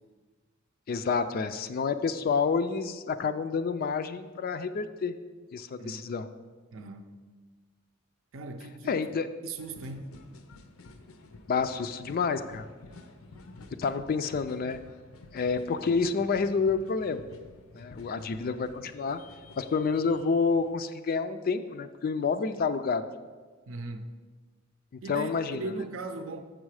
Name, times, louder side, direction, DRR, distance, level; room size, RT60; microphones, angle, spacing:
voice 1, 0.9-5.2 5.5-6.3 8.9-9.3 11.5-12.7 13.8-14.8 15.3-17.2 17.7-19.2 19.6-23.0 25.1-25.7, left 5 dB, 45° left, 10 dB, 0.3 m, -29 dB
voice 2, 6.7-7.1 8.3-9.0 9.4-10.1 23.7-24.1 25.0-26.4, right 2 dB, 65° right, 7 dB, 0.6 m, -38 dB
sound 1, 9.6-20.7, left 2 dB, 80° left, 0.6 m, -51 dB
6.6 x 6.2 x 4.8 m, 1.4 s
head